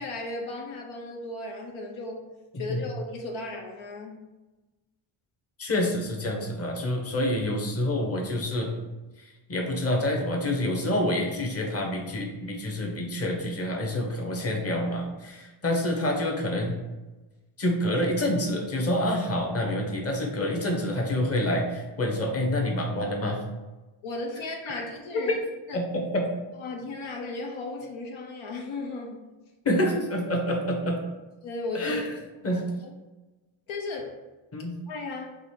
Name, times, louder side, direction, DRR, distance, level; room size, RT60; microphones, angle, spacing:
voice 1, 0.0-2.3 2.5-4.2 24.0-25.4 25.7-25.8 26.6-29.3 31.4-32.1 32.5-32.9 33.7-34.2 34.9-35.3, left 2 dB, 75° left, 1 dB, 0.8 m, -35 dB
voice 2, 5.6-8.7 9.2-16.7 17.6-23.4 25.3-25.4 25.7-26.3 29.6-31.0 31.7-32.1 32.4-32.7 34.5-34.8, left 1 dB, 30° left, 1 dB, 1.1 m, -27 dB
3.9 x 2.6 x 4.7 m, 1.1 s
cardioid pair, 80°, 49 cm